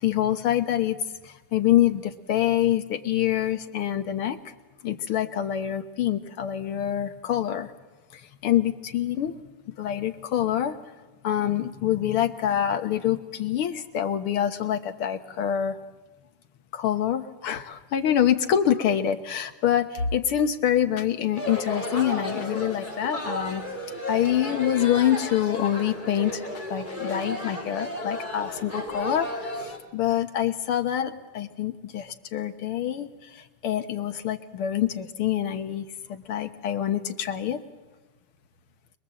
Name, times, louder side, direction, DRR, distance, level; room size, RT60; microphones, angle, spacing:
voice 1, 0.0-1.0 1.2-4.5 4.8-7.7 8.1-9.4 9.8-10.8 11.2-15.8 16.7-23.6 24.1-29.7 29.9-37.6, left 10 dB, 80° left, 7 dB, 2.1 m, -26 dB
sound 1, 21.4-29.8, left 1 dB, 20° left, 2.9 m, -33 dB
26.5 x 21.0 x 7.6 m, 1.2 s
omnidirectional pair, 2.4 m